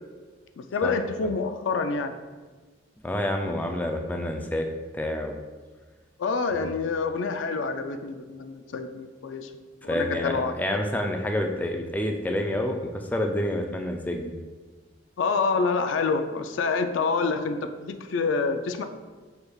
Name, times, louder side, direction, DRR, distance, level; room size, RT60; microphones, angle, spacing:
voice 1, 0.6-2.1 6.2-9.5 9.8-10.8 15.2-18.8, left 4 dB, 85° left, 8 dB, 0.4 m, -27 dB
voice 2, 3.0-4.7 4.9-5.4 6.5-6.7 9.9-14.3, left 1 dB, 10° left, 3 dB, 0.3 m, -28 dB
6.0 x 3.3 x 2.3 m, 1.3 s
head